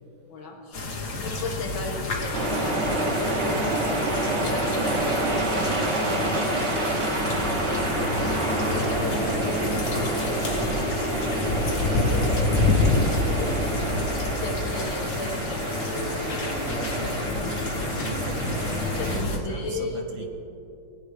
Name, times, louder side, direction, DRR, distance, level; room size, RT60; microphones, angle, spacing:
voice 1, 0.3-5.1 5.5-8.4 8.7-10.7 11.7-13.6 14.4-15.7 17.8-18.1 18.7-20.3, left 2 dB, 70° left, 0 dB, 2.3 m, -37 dB
sound 1, 0.7-19.4, left 3 dB, 45° left, 1.2 m, -29 dB
welcome to the machine, 2.3-19.2, right 1 dB, 40° right, 1.2 m, -28 dB
voice 2, 16.7-17.2 18.0-19.2 19.5-20.0, right 5 dB, 70° right, 4 dB, 1.6 m, -37 dB
18.5 x 9.8 x 3.3 m, 2.8 s
omnidirectional pair, 2.3 m